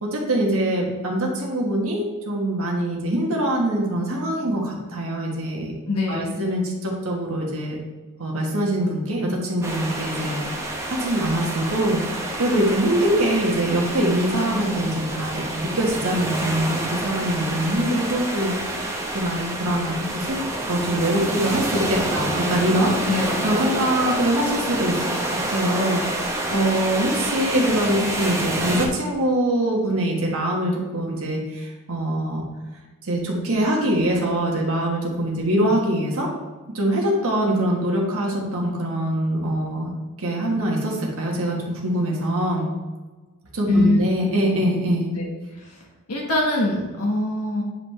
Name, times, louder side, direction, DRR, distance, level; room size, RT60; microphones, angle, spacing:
voice 1, 0.0-5.8 6.1-7.8 8.2-20.4 20.7-22.9 23.2-32.4 33.0-36.3 36.7-39.9 40.2-42.7 43.5-45.1, right 1 dB, 65° right, -1 dB, 1.4 m, -23 dB
voice 2, 5.9-6.4 23.1-23.5 43.7-44.0 45.1-45.3 45.6-45.7 46.1-47.6, left 2 dB, 85° left, -2 dB, 1.3 m, -22 dB
sound 1, 9.6-28.9, right 1 dB, 15° right, 1.0 m, -28 dB
9.1 x 5.6 x 3.2 m, 1.2 s
head